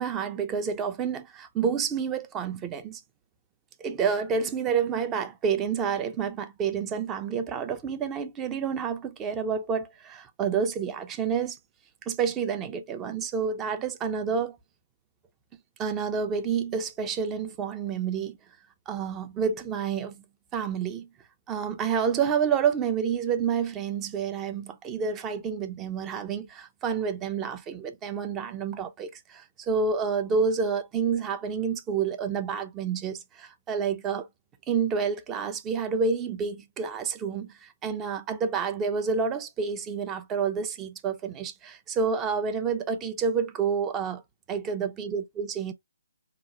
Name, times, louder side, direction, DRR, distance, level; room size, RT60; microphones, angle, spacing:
voice 1, 0.0-3.0 3.8-11.6 12.1-14.6 15.8-18.4 18.9-20.2 20.5-21.1 21.5-34.3 34.7-44.2 44.5-45.7, right 6 dB, 15° right, 0.4 m, -29 dB
4.1 x 2.9 x 2.3 m
figure-of-eight pair, 145°, 0 cm